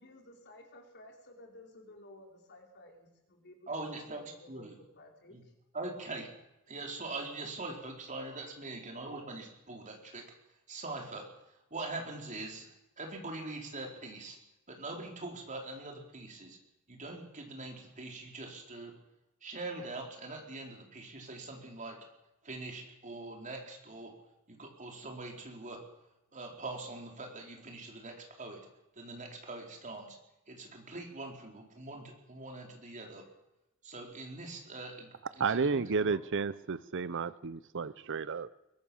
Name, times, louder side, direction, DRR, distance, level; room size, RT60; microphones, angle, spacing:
voice 1, 0.0-5.5, left 1 dB, 50° left, 2 dB, 4.8 m, -55 dB
voice 2, 3.7-4.2 4.5-4.7 5.3-5.4 5.7-6.3 6.7-10.2 10.7-11.3 11.7-14.4 14.7-16.6 16.9-18.9 19.4-22.0 22.4-24.1 24.5-25.8 26.3-28.6 29.0-30.2 30.5-33.2 33.8-36.2, right 2 dB, 35° right, 2 dB, 4.3 m, -43 dB
voice 3, 35.4-38.5, right 5 dB, 55° right, 16 dB, 0.7 m, -32 dB
22.5 x 19.5 x 7.2 m, 0.91 s
head